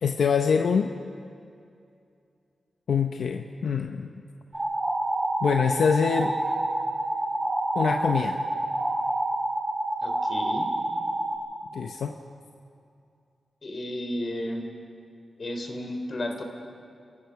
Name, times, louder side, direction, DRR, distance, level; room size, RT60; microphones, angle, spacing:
voice 1, 0.0-1.0 2.9-4.1 5.4-6.4 7.7-8.4 11.7-12.2, left 6 dB, 85° left, 5 dB, 0.8 m, -24 dB
sound 1, 4.5-11.3, right 1 dB, 25° right, 3.5 m, -28 dB
voice 2, 10.0-10.7 13.6-14.6 15.4-16.4, left 1 dB, 50° left, 4 dB, 3.2 m, -33 dB
29.5 x 15.5 x 5.8 m, 2.5 s
wide cardioid pair, 85°, 0 cm